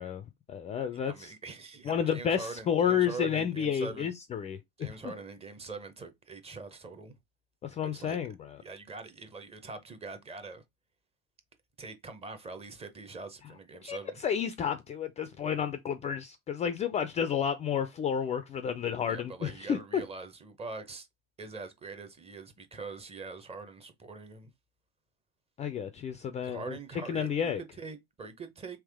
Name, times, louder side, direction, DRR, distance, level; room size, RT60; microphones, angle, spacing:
voice 1, 0.0-1.3 1.9-5.1 7.6-8.6 13.8-20.0 25.6-26.8 27.1-27.6, left 8 dB, 20° left, 0.4 m, -31 dB
voice 2, 1.1-4.1 4.8-7.1 7.8-8.2 8.6-10.6 11.8-14.2 19.1-21.1 21.4-24.5 26.4-28.8, right 3 dB, 20° right, 0.7 m, -43 dB
3.5 x 2.9 x 3.4 m
hypercardioid pair, 95°, 31 cm